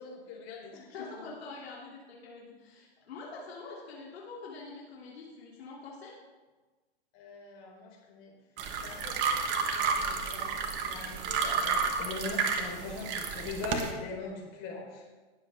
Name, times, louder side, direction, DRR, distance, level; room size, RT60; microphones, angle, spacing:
voice 1, 0.0-0.9 1.1-1.3 7.1-8.4 8.8-15.0, left 3 dB, 40° left, -1 dB, 3.9 m, -42 dB
voice 2, 0.7-6.1, left 4 dB, 70° left, -4 dB, 3.0 m, -45 dB
sound 1, 8.6-13.9, right 5 dB, 35° right, 1.4 m, -31 dB
19.0 x 7.5 x 3.5 m, 1.3 s
hypercardioid pair, 125°, 32 cm